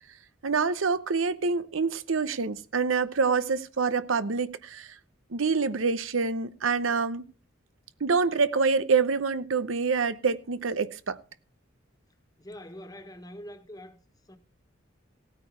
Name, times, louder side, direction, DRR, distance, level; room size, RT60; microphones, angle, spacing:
voice 1, 0.4-5.0 5.3-7.2 8.0-11.2, right 4 dB, 85° right, 0.8 m, -26 dB
voice 2, 12.4-14.0 14.2-14.4, equal, 20° left, 1.4 m, -44 dB
16.5 x 9.1 x 4.6 m
head